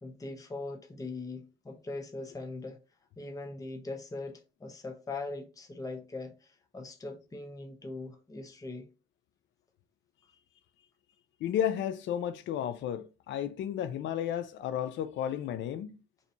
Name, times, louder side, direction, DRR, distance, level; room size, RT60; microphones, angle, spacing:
voice 1, 0.0-2.8 3.2-8.9, left 3 dB, 15° left, 0.7 m, -41 dB
voice 2, 11.4-16.0, left 10 dB, 70° left, 0.4 m, -33 dB
2.7 x 2.6 x 4.1 m
cardioid pair, 90°, 20 cm